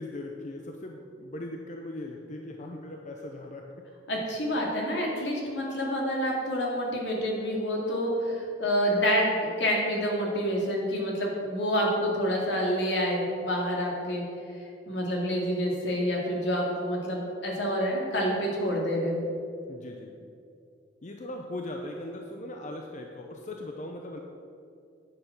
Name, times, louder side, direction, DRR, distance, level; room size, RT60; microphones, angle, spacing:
voice 1, 0.0-3.9 19.7-20.3 21.0-24.2, left 1 dB, 45° left, 2 dB, 0.7 m, -39 dB
voice 2, 4.1-14.2 14.9-19.2, equal, 80° left, -2 dB, 2.4 m, -28 dB
9.7 x 7.0 x 6.0 m, 2.5 s
head